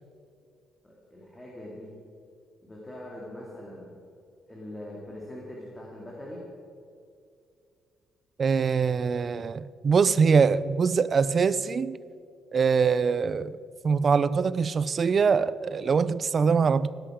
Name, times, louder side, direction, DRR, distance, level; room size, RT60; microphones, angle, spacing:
voice 1, 0.8-1.9 2.6-3.9 4.5-6.4, left 1 dB, 10° left, 2.5 m, -42 dB
voice 2, 8.4-12.0 12.5-13.6 13.8-16.9, right 5 dB, 35° right, 0.4 m, -23 dB
18.0 x 10.5 x 5.0 m
cardioid pair, 130°, 0 cm